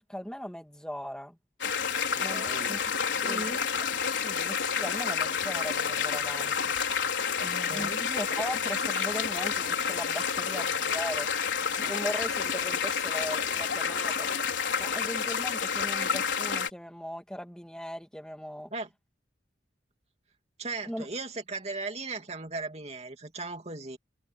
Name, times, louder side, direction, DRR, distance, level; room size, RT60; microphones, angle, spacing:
voice 1, 0.0-1.4 2.2-2.8 3.2-3.5 3.8-3.9 4.2-6.8 7.4-11.4 11.8-18.7 20.8-21.1, equal, 5° left, 2.3 m, -39 dB
sound 1, 1.6-16.7, left 6 dB, 85° left, 4.5 m, -29 dB
voice 2, 2.2-2.9 3.2-3.7 7.4-8.0 18.7-18.9 20.6-24.0, right 3 dB, 35° right, 2.6 m, -37 dB
head